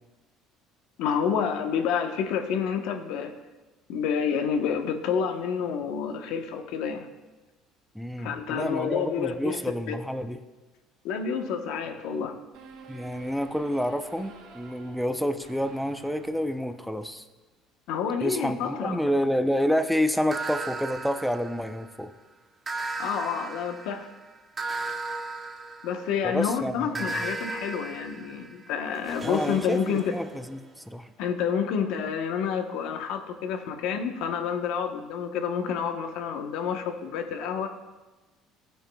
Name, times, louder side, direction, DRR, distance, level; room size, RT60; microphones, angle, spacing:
voice 1, 1.0-3.3 3.9-7.1 8.2-9.6 9.9-10.0 11.0-12.4 17.9-19.0 23.0-24.1 25.8-30.2 31.2-37.7, left 7 dB, 75° left, 6 dB, 1.0 m, -29 dB
voice 2, 7.9-10.4 12.9-17.3 18.2-22.1 26.2-27.3 29.2-31.1, equal, ahead, 9 dB, 0.6 m, -29 dB
sound 1, 12.5-17.2, right 4 dB, 85° right, 3.0 m, -50 dB
sound 2, 20.3-22.0 22.7-26.3 27.0-30.7, right 3 dB, 20° right, 1.1 m, -36 dB
16.0 x 9.0 x 2.3 m, 1.2 s
cardioid pair, 115°, 0 cm